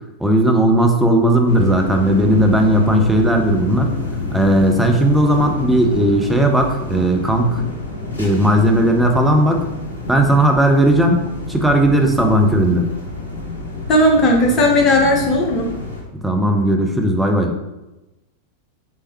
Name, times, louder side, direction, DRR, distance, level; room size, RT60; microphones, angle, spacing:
voice 1, 0.2-3.9 4.3-7.6 8.2-9.6 10.1-12.9 16.1-17.6, right 1 dB, 5° right, 3 dB, 0.5 m, -16 dB
sound 1, 1.4-16.0, left 2 dB, 80° left, 0.8 m, -29 dB
voice 2, 13.9-15.7, left 1 dB, 25° left, -1 dB, 0.9 m, -15 dB
3.4 x 3.2 x 2.9 m, 0.99 s
figure-of-eight pair, 90°, 0 cm